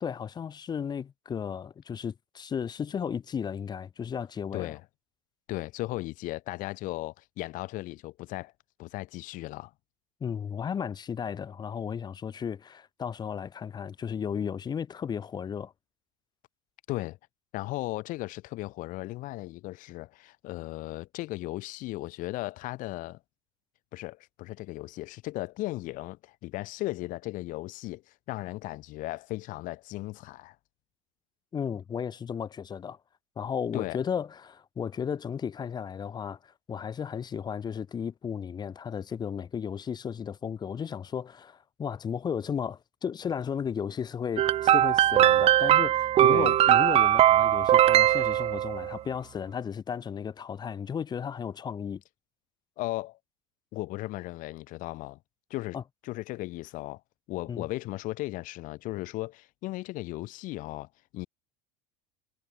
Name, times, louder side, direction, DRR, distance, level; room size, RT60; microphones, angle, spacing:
voice 1, 0.0-4.7 10.2-15.7 31.5-33.0 33.4-52.0 55.7-55.8 57.5-57.7, left 7 dB, 25° left, 0.7 m, -34 dB
voice 2, 5.5-8.5 8.8-9.7 16.9-17.2 17.5-23.2 23.9-28.0 28.3-30.5 33.7-34.0 46.2-46.6 52.8-53.2 53.7-55.2 55.5-55.8 56.0-57.0 57.3-60.9 61.1-61.3, left 18 dB, 60° left, 3.1 m, -36 dB
sound 1, 44.4-49.0, right 12 dB, 40° right, 0.5 m, -21 dB
hypercardioid pair, 90°, 16 cm